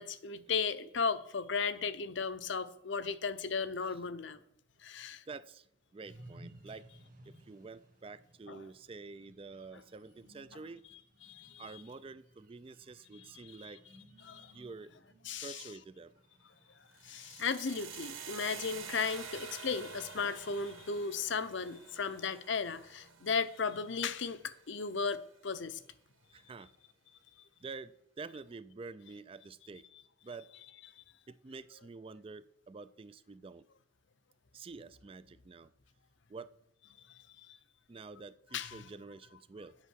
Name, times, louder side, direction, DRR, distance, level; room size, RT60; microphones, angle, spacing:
voice 1, 0.0-4.4 4.8-5.2 8.5-8.6 11.2-11.6 13.3-13.5 14.2-14.5 15.2-15.7 17.0-25.8 31.0-31.1 37.1-37.6 38.5-38.8, left 5 dB, 60° left, 0.7 m, -36 dB
voice 2, 5.3-6.9 7.2-10.8 11.6-13.8 14.5-14.9 15.3-16.2 26.3-26.7 27.6-29.8 30.2-30.5 31.3-33.6 34.5-35.7 36.3-36.5 37.9-39.8, right 4 dB, 25° right, 0.3 m, -48 dB
sound 1, 6.0-17.4, right 1 dB, 40° right, 1.5 m, -59 dB
sound 2, 16.9-25.0, right 7 dB, 85° right, 1.5 m, -49 dB
8.2 x 7.4 x 6.3 m
head